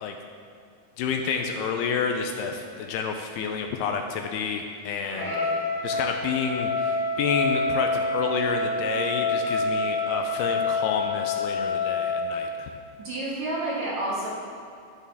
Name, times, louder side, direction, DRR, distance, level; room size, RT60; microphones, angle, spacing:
voice 1, 1.0-5.3 5.8-12.7, left 6 dB, 80° left, 4 dB, 2.5 m, -29 dB
Trumpet, 5.1-12.4, left 3 dB, 20° left, 2.1 m, -27 dB
voice 2, 5.1-5.5 13.0-14.3, right 1 dB, 50° right, -6 dB, 2.6 m, -30 dB
11.5 x 10.5 x 3.5 m, 2.4 s
omnidirectional pair, 4.8 m